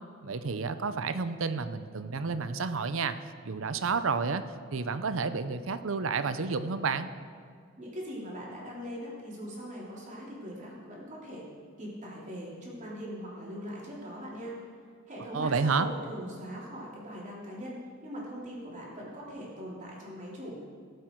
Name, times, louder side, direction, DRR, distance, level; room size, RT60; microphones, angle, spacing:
voice 1, 0.2-3.2 3.4-4.4 4.7-7.1 15.3-15.9, right 4 dB, 70° right, 12 dB, 0.6 m, -30 dB
voice 2, 7.8-11.4 11.8-14.5 15.1-20.6, equal, 35° right, -5 dB, 3.3 m, -41 dB
18.0 x 7.9 x 4.6 m, 2.1 s
head